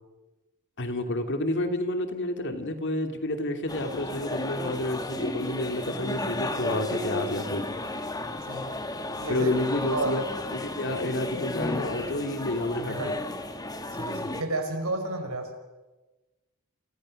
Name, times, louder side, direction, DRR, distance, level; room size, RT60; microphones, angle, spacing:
voice 1, 0.8-7.6 9.3-10.2 10.5-13.1, left 1 dB, 55° left, 6 dB, 2.8 m, -29 dB
sound 1, 3.7-14.4, left 1 dB, 15° left, 1.8 m, -33 dB
voice 2, 9.2-9.5 9.9-10.1 12.8-13.1 13.9-15.5, right 2 dB, 75° right, 5 dB, 5.6 m, -31 dB
29.0 x 28.0 x 6.5 m, 1.2 s
head